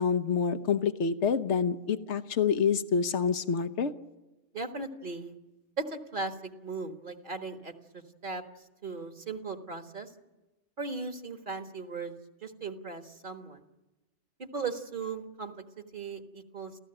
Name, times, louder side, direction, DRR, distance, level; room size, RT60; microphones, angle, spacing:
voice 1, 0.0-3.9, left 6 dB, 80° left, 11 dB, 1.3 m, -27 dB
voice 2, 4.5-5.3 5.8-8.4 8.8-10.1 10.8-12.1 12.4-13.6 14.4-15.6 15.9-16.7, right 4 dB, 45° right, 6 dB, 1.7 m, -37 dB
29.5 x 15.0 x 8.9 m, 1.1 s
omnidirectional pair, 1.2 m